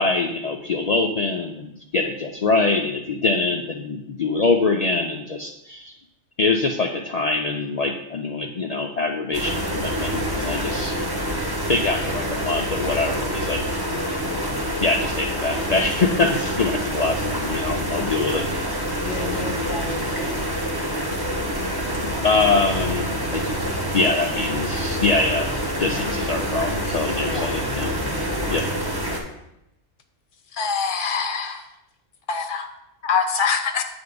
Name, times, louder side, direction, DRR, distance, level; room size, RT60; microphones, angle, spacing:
voice 1, 0.0-5.9 6.4-10.9 11.7-13.6 14.8-18.6 22.2-23.4 23.9-25.5 25.8-27.9 28.5-28.7, left 3 dB, 85° left, 2 dB, 0.3 m, -24 dB
sound 1, 9.3-29.2, equal, 20° right, 0.9 m, -26 dB
voice 2, 10.7-11.1 19.0-20.5 25.9-26.0 27.2-27.5 28.1-28.3, left 2 dB, 20° left, 2 dB, 1.0 m, -34 dB
voice 3, 30.6-31.6 32.3-32.7 33.0-33.8, left 5 dB, 50° left, 6 dB, 0.7 m, -23 dB
7.9 x 3.5 x 5.2 m, 0.84 s
omnidirectional pair, 1.3 m